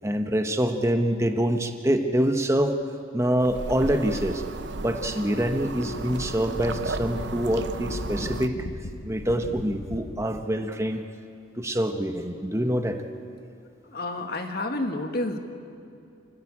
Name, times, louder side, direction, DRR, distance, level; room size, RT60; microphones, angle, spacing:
voice 1, 0.0-2.8 3.1-4.4 4.8-8.5 9.0-11.0 11.6-13.0, equal, 15° right, 6 dB, 1.1 m, -25 dB
sound 1, 3.4-8.5, right 3 dB, 60° right, 0.7 m, -35 dB
Wind, 5.8-10.5, left 1 dB, 85° left, 1.1 m, -38 dB
voice 2, 13.8-15.4, left 2 dB, 50° left, 5 dB, 1.8 m, -29 dB
29.0 x 15.0 x 8.8 m, 2.5 s
head